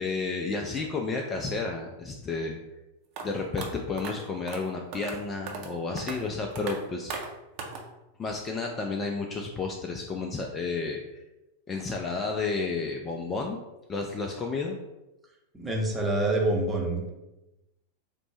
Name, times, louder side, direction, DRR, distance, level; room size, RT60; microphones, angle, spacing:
voice 1, 0.0-2.6 3.2-7.1 8.2-11.2 11.7-13.6 13.9-14.8, left 4 dB, 20° left, 2 dB, 0.3 m, -31 dB
sound 1, 3.2-3.3 3.6-3.7 4.0-4.1 4.5-4.6 4.9-5.2 5.5-5.7 6.0-6.2 6.6-6.7 7.1-7.3 7.6-7.8, right 5 dB, 45° right, 0.6 m, -36 dB
voice 2, 15.6-17.1, right 2 dB, 10° right, -2 dB, 0.8 m, -26 dB
4.2 x 2.0 x 3.1 m, 0.99 s
figure-of-eight pair, 90°, 0 cm